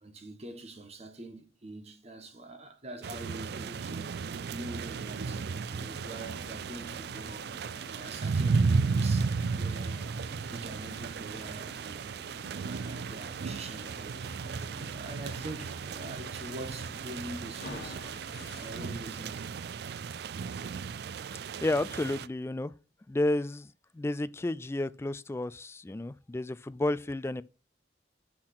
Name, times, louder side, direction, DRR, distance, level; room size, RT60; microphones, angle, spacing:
voice 1, 0.0-5.4 5.7-7.5 7.9-10.1 10.5-12.1 12.5-14.2 14.8-18.0 18.6-19.5, right 2 dB, 35° right, 1.5 m, -44 dB
sound 1, 3.0-22.3, right 4 dB, 65° right, 0.4 m, -34 dB
sound 2, 4.7-19.0, left 2 dB, 65° left, 1.3 m, -51 dB
voice 2, 21.6-22.7 23.1-23.7 23.9-27.4, left 2 dB, 15° left, 0.3 m, -31 dB
6.4 x 5.9 x 5.9 m
head